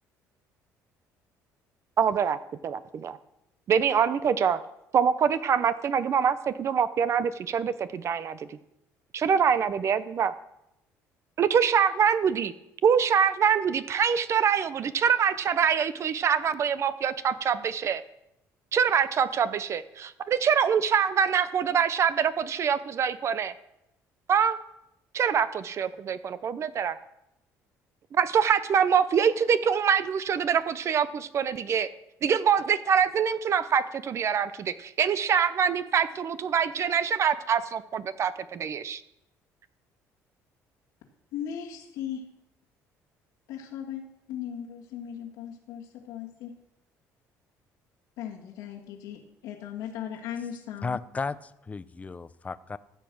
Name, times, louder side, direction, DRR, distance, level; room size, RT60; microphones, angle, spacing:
voice 1, 2.0-2.4 2.6-3.2 3.7-4.6 4.9-8.6 9.1-10.3 11.4-12.5 12.8-18.0 18.7-23.5 24.3-24.6 25.1-27.0 28.1-31.9 32.2-39.0, right 7 dB, 50° right, 14 dB, 0.8 m, -25 dB
voice 2, 41.3-42.2 43.5-44.0 44.3-46.6 48.2-51.0, left 9 dB, 90° left, -4 dB, 2.1 m, -37 dB
voice 3, 50.8-52.8, left 4 dB, 20° left, 15 dB, 0.6 m, -34 dB
15.0 x 7.1 x 6.2 m, 0.83 s
cardioid pair, 100°, 6 cm